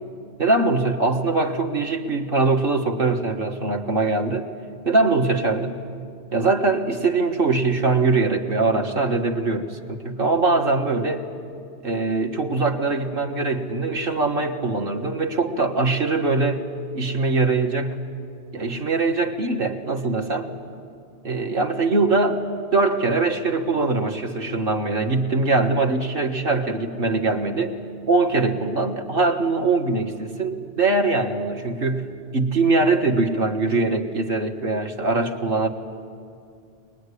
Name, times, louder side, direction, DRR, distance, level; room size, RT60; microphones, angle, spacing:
voice 1, 0.4-4.5 4.9-5.8 6.3-11.3 11.8-16.7 17.0-17.9 18.5-20.5 21.2-22.4 22.7-27.8 28.1-35.7, right 3 dB, 50° right, 2 dB, 1.8 m, -22 dB
24.0 x 20.5 x 9.9 m, 2.4 s
omnidirectional pair, 1.2 m